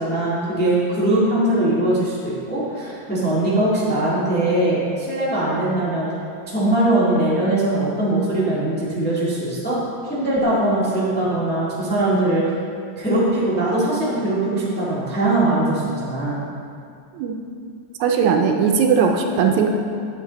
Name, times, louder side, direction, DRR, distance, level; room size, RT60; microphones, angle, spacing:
voice 1, 0.0-6.1 6.5-9.8 10.0-12.4 12.9-16.4, right 1 dB, 5° left, -8 dB, 1.2 m, -21 dB
voice 2, 18.0-19.7, right 6 dB, 80° right, 3 dB, 1.9 m, -18 dB
9.3 x 7.3 x 4.0 m, 2.4 s
omnidirectional pair, 3.4 m